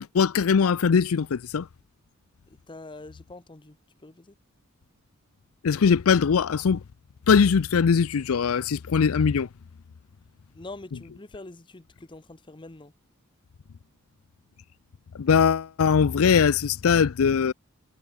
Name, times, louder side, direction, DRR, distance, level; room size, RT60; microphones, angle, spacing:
voice 1, 0.1-1.7 5.6-6.8 7.3-9.5 15.2-17.5, left 6 dB, 80° left, 0.5 m, -21 dB
voice 2, 2.5-3.8 4.0-4.3 10.5-12.9, left 2 dB, 20° left, 0.8 m, -44 dB
head